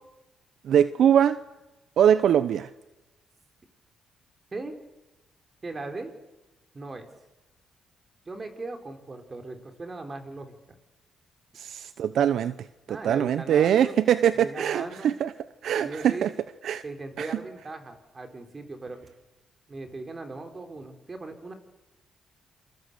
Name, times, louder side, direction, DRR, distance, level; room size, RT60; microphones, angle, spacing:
voice 1, 0.6-1.4 2.0-2.7 11.6-12.5 12.9-15.3 15.6-16.3 16.6-16.8 17.2-17.4, right 9 dB, 70° right, 14 dB, 0.8 m, -22 dB
voice 2, 5.6-6.1 6.7-7.1 8.3-10.8 12.9-14.0 14.3-15.1 15.8-16.2 16.8-19.0 19.7-21.5, right 3 dB, 30° right, 6 dB, 4.1 m, -38 dB
27.5 x 22.5 x 6.8 m, 1.1 s
cardioid pair, 90°, 0 cm